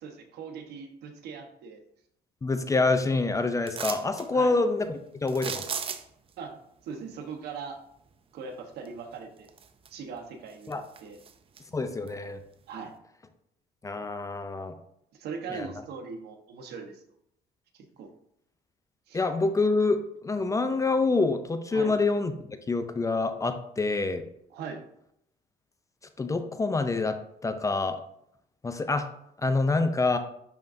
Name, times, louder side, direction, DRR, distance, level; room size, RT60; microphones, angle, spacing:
voice 1, 0.0-1.8 4.3-4.5 6.4-6.6 6.8-7.8 8.3-9.5 9.9-11.2 12.7-12.9 15.1-17.0 17.7-18.1 19.1-19.2 21.7-22.0 24.5-24.8, right 5 dB, 75° right, 4 dB, 1.1 m, -40 dB
voice 2, 2.4-5.7 10.7-10.8 11.7-12.4 13.8-14.7 15.5-15.7 19.1-24.2 26.2-28.0 28.6-29.1 29.4-30.2, left 3 dB, 20° left, 9 dB, 0.5 m, -26 dB
sound 1, 3.7-4.3 5.3-6.3 8.8-8.9 9.4-10.1 10.5-11.6 12.1-12.2, right 6 dB, 35° right, 0.5 m, -36 dB
10.5 x 3.6 x 2.6 m, 0.74 s
cardioid pair, 110°, 17 cm